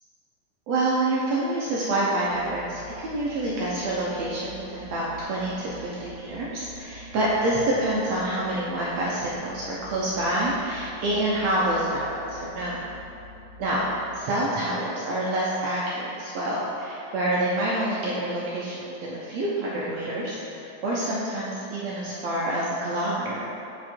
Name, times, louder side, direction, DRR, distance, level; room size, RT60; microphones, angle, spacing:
voice 1, 0.7-12.8 13.6-13.8 14.1-23.5, right 1 dB, 70° right, -6 dB, 1.6 m, -27 dB
sound 1, 2.3-14.2, left 1 dB, 75° left, 2.2 m, -46 dB
8.2 x 4.8 x 4.4 m, 2.9 s
omnidirectional pair, 3.8 m